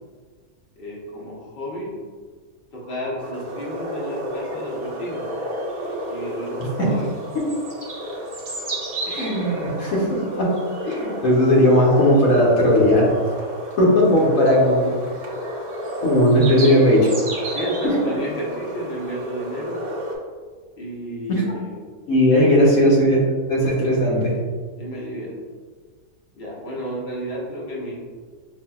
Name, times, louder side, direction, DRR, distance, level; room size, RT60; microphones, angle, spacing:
voice 1, 0.8-1.9 2.7-5.2 6.1-7.1 16.5-16.7 17.5-19.8 20.8-21.8 22.5-22.9 24.7-25.4 26.3-28.0, equal, 45° left, -5 dB, 1.0 m, -32 dB
sound 1, 3.2-20.1, right 1 dB, 45° right, 0.6 m, -31 dB
voice 2, 9.1-10.5 10.8-13.1 13.8-14.9 16.0-17.0 17.8-17.9 21.3-21.5 22.1-23.2 23.5-24.4, equal, 75° left, -5 dB, 1.3 m, -17 dB
5.2 x 2.7 x 2.3 m, 1.5 s
omnidirectional pair, 1.5 m